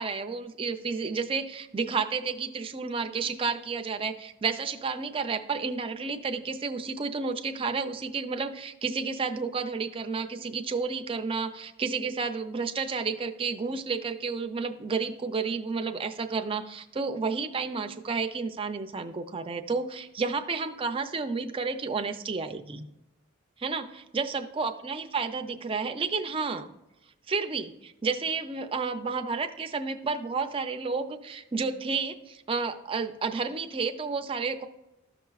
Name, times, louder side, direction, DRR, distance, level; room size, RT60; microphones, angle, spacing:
voice 1, 0.0-22.9 23.6-26.7 27.3-34.7, right 4 dB, 25° right, 7 dB, 0.5 m, -31 dB
13.5 x 5.8 x 2.4 m, 0.91 s
head